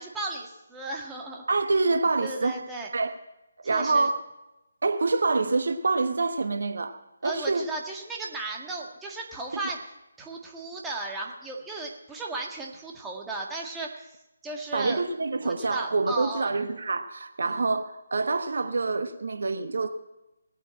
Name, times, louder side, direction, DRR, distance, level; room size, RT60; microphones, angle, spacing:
voice 1, 0.0-1.5 2.2-2.9 3.6-4.1 7.2-9.8 10.2-14.1 14.4-15.0 15.4-16.5, right 2 dB, 10° right, -1 dB, 1.8 m, -35 dB
voice 2, 1.5-2.6 2.9-3.2 3.6-4.2 4.8-7.7 14.7-19.9, right 3 dB, 60° right, 9 dB, 1.0 m, -26 dB
19.0 x 9.2 x 7.7 m, 0.96 s
figure-of-eight pair, 150°, 0 cm